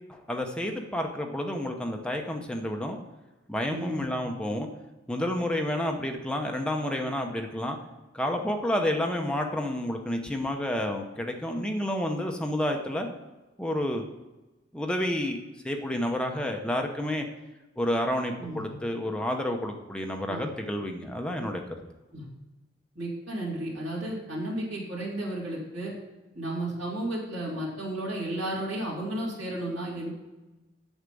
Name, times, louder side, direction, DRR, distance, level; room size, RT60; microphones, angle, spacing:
voice 1, 0.1-3.0 3.5-4.7 5.1-7.8 8.1-13.1 13.6-14.0 14.7-15.4 15.6-17.3 17.8-21.6, left 1 dB, 5° left, 3 dB, 0.8 m, -30 dB
voice 2, 3.7-4.1 18.4-18.7 20.3-20.5 22.1-22.2 22.9-25.9 26.3-30.1, right 1 dB, 70° right, -7 dB, 3.3 m, -33 dB
8.1 x 7.3 x 5.3 m, 1.1 s
head